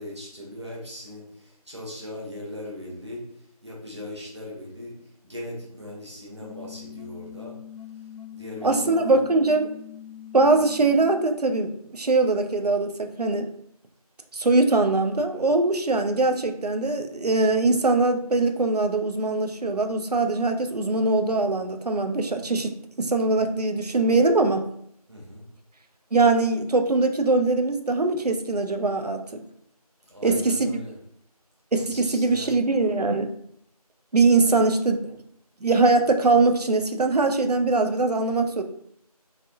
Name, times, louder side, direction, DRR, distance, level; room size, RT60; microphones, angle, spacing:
voice 1, 0.0-7.6 8.3-9.3 25.1-25.4 30.1-31.0 31.8-32.5 34.4-34.6, left 1 dB, 45° right, -4 dB, 1.0 m, -39 dB
sound 1, 6.4-11.4, left 10 dB, 80° left, 0.4 m, -43 dB
voice 2, 8.6-9.7 10.3-13.5 14.3-24.6 26.1-29.4 30.2-30.7 31.7-33.3 34.1-35.1 35.6-38.6, right 3 dB, 80° right, 6 dB, 0.5 m, -22 dB
3.2 x 2.6 x 2.5 m, 0.68 s
figure-of-eight pair, 175°, 20 cm